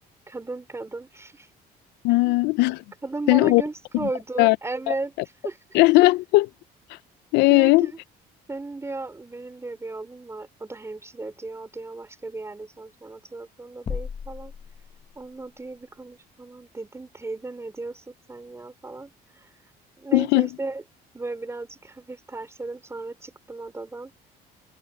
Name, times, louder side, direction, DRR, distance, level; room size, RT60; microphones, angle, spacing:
voice 1, 0.3-1.5 2.1-2.4 3.0-5.1 5.4-5.8 7.5-8.0 8.5-14.5 15.1-19.5 20.0-20.8 21.1-24.3, right 3 dB, 15° right, 4.6 m, -35 dB
voice 2, 2.0-2.8 3.3-3.6 4.0-4.1 4.4-4.6 4.9-5.0 5.7-6.5 7.3-7.9 20.1-20.5, left 21 dB, 90° left, 0.4 m, -18 dB
sound 1, 13.9-15.5, left 6 dB, 35° left, 1.1 m, -35 dB
cardioid pair, 110°, 17 cm